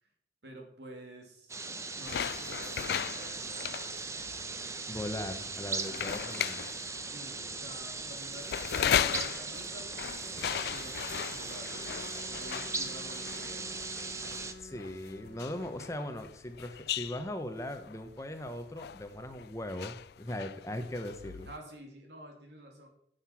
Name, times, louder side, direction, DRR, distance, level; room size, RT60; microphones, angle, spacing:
voice 1, 0.4-3.7 5.9-6.2 7.0-11.7 12.4-13.7 21.5-22.9, equal, 80° right, 3 dB, 2.4 m, -49 dB
sound 1, 1.5-14.5, right 4 dB, 15° right, 0.6 m, -39 dB
sound 2, 2.1-21.6, left 9 dB, 65° left, 0.3 m, -37 dB
voice 2, 4.9-6.7 14.6-21.5, left 1 dB, 15° left, 7 dB, 0.8 m, -39 dB
Wind instrument woodwind instrument, 11.6-15.8, left 2 dB, 90° left, 1.3 m, -50 dB
9.7 x 6.6 x 5.8 m, 0.71 s
head